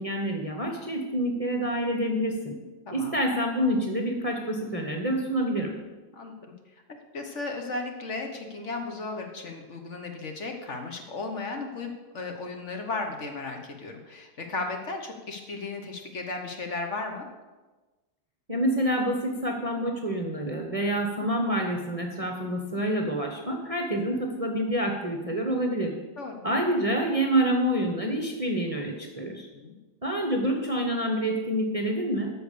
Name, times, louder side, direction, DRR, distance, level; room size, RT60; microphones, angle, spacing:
voice 1, 0.0-2.6 2.9-5.8 18.5-25.9 26.4-29.5 30.0-32.3, right 1 dB, 25° right, 2 dB, 0.9 m, -27 dB
voice 2, 6.1-6.5 7.1-17.3 26.2-26.4 29.5-29.8, left 3 dB, 50° left, 4 dB, 1.3 m, -35 dB
13.0 x 4.7 x 6.7 m, 1.2 s
omnidirectional pair, 1.7 m